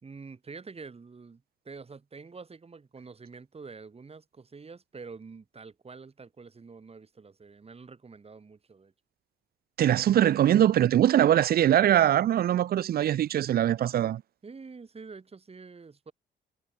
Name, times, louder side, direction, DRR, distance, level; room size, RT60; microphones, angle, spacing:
voice 1, 0.0-8.9 14.4-16.1, right 4 dB, 30° right, 3.4 m, -47 dB
voice 2, 9.8-14.2, right 11 dB, 50° right, 0.4 m, -22 dB
cardioid pair, 90°, 20 cm